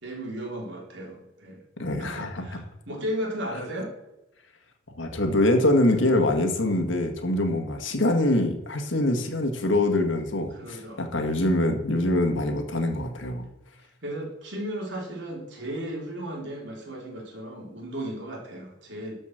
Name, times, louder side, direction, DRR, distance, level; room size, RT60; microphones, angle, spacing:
voice 1, 0.0-1.6 2.0-3.9 10.5-11.6 14.0-19.1, equal, 65° right, -1 dB, 3.6 m, -35 dB
voice 2, 1.8-2.4 5.0-13.4, left 1 dB, 75° left, 5 dB, 1.7 m, -24 dB
12.5 x 5.3 x 6.5 m, 0.93 s
head